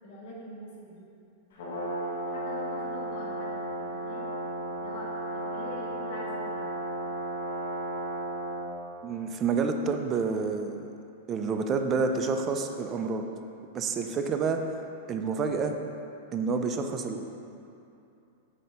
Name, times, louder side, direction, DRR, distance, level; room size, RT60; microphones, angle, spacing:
voice 1, 0.0-1.1 2.3-4.3 4.8-6.7, left 1 dB, 55° left, -4 dB, 1.3 m, -44 dB
Brass instrument, 1.5-8.7, right 1 dB, 80° left, 1.4 m, -34 dB
voice 2, 9.0-10.9 11.3-13.2 13.7-14.6 15.1-15.7 16.3-17.2, right 5 dB, 25° right, 5 dB, 0.4 m, -28 dB
7.6 x 2.8 x 5.4 m, 2.7 s
supercardioid pair, 145°, 0 cm